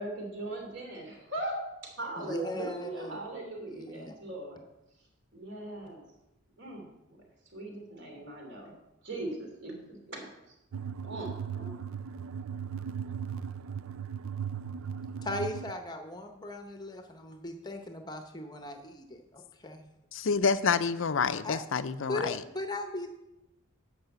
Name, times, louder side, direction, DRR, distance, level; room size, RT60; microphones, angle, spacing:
voice 1, 0.0-4.6 5.3-6.0 6.6-6.9 7.5-8.8 9.0-10.3 11.0-11.7, right 1 dB, 55° right, 1 dB, 3.1 m, -39 dB
voice 2, 2.2-3.2 3.7-4.1 15.2-19.9 21.4-21.6 22.1-23.2, left 1 dB, 20° left, 6 dB, 0.8 m, -38 dB
sound 1, 10.7-15.7, right 7 dB, 70° right, 0.4 m, -37 dB
voice 3, 20.1-22.4, left 5 dB, 60° left, 13 dB, 0.5 m, -28 dB
10.5 x 6.1 x 8.0 m, 0.92 s
head